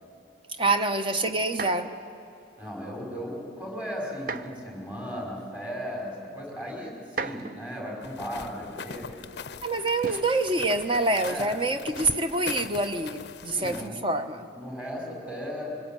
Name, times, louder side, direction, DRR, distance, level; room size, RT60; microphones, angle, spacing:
voice 1, 0.6-2.0 9.6-14.4, right 2 dB, 25° right, 7 dB, 1.0 m, -26 dB
sound 1, 1.5-2.0 4.1-4.7 5.7-5.8 7.0-7.8 10.0-10.4 11.6-12.0, right 4 dB, 45° right, 0.7 m, -36 dB
voice 2, 2.6-9.1 11.3-11.5 13.5-14.1 14.6-15.8, equal, 10° right, -2 dB, 5.2 m, -36 dB
sound 2, 8.0-13.9, left 5 dB, 60° left, 0.5 m, -41 dB
24.5 x 21.5 x 9.1 m, 2.5 s
head